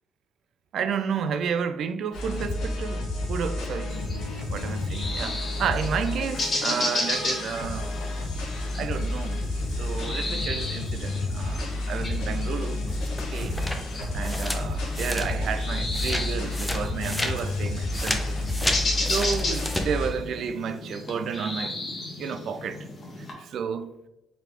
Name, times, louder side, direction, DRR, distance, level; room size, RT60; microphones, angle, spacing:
voice 1, 0.7-3.9 4.5-7.9 8.7-9.5 9.8-12.8 13.3-13.6 14.1-18.4 19.1-21.8 22.2-22.9 23.4-24.1, right 7 dB, 70° right, 0.3 m, -31 dB
sound 1, 2.1-20.1, left 2 dB, 85° left, 1.0 m, -30 dB
sound 2, 3.9-23.3, left 2 dB, 40° left, 1.1 m, -34 dB
sound 3, 12.9-15.6 15.9-19.8, left 1 dB, 10° left, 0.6 m, -32 dB
4.0 x 3.3 x 2.9 m
cardioid pair, 90°, 0 cm